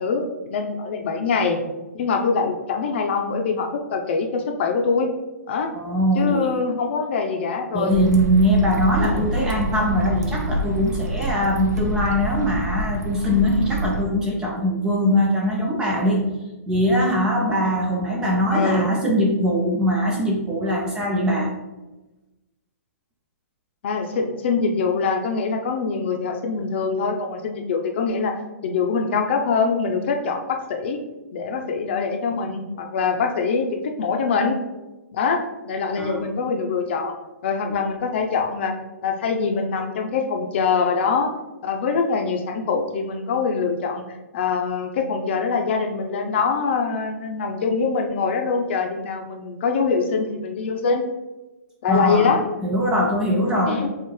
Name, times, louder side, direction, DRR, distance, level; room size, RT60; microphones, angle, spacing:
voice 1, 0.0-1.6 1.9-5.1 5.5-5.7 6.1-8.1 9.0-9.3 18.5-18.9 23.8-28.3 28.6-31.0 31.3-34.6 35.1-37.1 37.4-38.7 39.0-41.3 41.6-44.0 44.3-51.0 51.8-52.4 53.7-53.9, left 5 dB, 40° left, 3 dB, 0.6 m, -24 dB
voice 2, 5.7-6.5 7.7-16.3 16.7-21.5 36.0-36.3 51.9-52.3 52.6-53.8, equal, 10° right, -1 dB, 0.3 m, -21 dB
sound 1, 7.9-14.0, right 2 dB, 80° right, 0.8 m, -27 dB
6.7 x 2.4 x 3.1 m, 1.1 s
hypercardioid pair, 160°, 9 cm